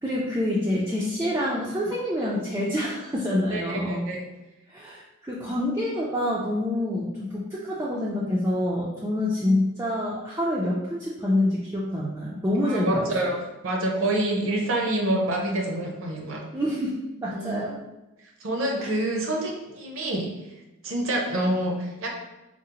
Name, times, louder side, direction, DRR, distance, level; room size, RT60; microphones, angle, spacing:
voice 1, 0.0-4.0 4.7-13.4 16.5-17.8 18.8-18.9, left 1 dB, 15° right, -6 dB, 0.3 m, -27 dB
voice 2, 3.5-4.2 12.7-13.4 13.6-16.4 17.3-17.5 18.4-20.3 20.8-22.2, right 1 dB, 70° right, 0 dB, 0.6 m, -27 dB
3.7 x 2.0 x 2.8 m, 1.0 s
head